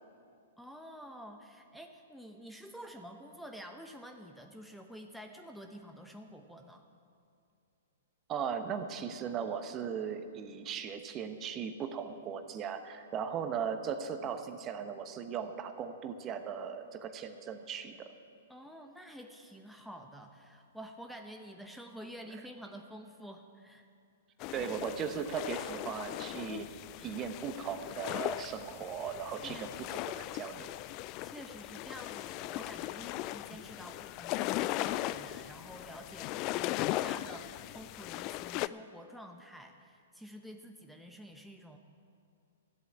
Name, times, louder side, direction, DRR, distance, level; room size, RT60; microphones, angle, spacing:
voice 1, 0.6-6.8 18.5-23.9 24.5-24.7 29.4-30.0 31.2-41.8, equal, ahead, 4 dB, 0.8 m, -49 dB
voice 2, 8.3-18.1 24.5-26.7 27.0-30.7, right 7 dB, 30° right, 8 dB, 1.0 m, -38 dB
sound 1, 24.4-38.7, left 16 dB, 40° left, 0.3 m, -38 dB
13.5 x 8.3 x 8.6 m, 2.4 s
hypercardioid pair, 120°, 0 cm